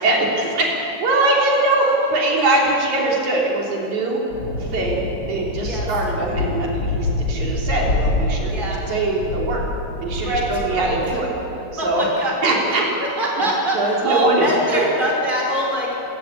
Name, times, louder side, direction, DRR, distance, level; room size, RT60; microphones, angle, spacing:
voice 1, 0.0-1.8 2.1-4.2 4.6-9.6 10.0-11.3 11.8-12.1 12.4-12.9 13.4-13.5 13.7-14.8, right 2 dB, 80° right, -2 dB, 4.6 m, -22 dB
voice 2, 1.2-2.1 5.6-5.9 8.5-8.8 10.2-11.0 11.8-12.3 12.7-15.9, right 1 dB, 15° right, -2 dB, 5.4 m, -24 dB
sound 1, 4.3-11.2, left 2 dB, 50° left, 2.6 m, -26 dB
28.0 x 15.0 x 8.6 m, 2.9 s
omnidirectional pair, 3.3 m